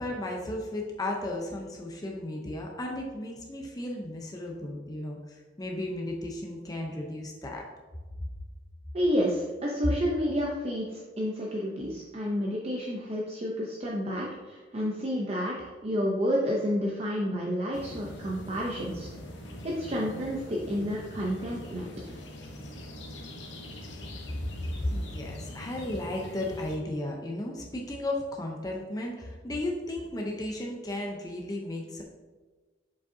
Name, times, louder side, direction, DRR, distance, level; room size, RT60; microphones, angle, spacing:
voice 1, 0.0-7.7 24.7-32.0, left 1 dB, 20° left, 0 dB, 0.6 m, -34 dB
voice 2, 8.9-19.1 19.6-21.9, equal, 35° right, -3 dB, 0.6 m, -30 dB
sound 1, 17.7-26.8, equal, 75° left, 0.9 m, -43 dB
7.1 x 5.2 x 2.7 m, 1.3 s
head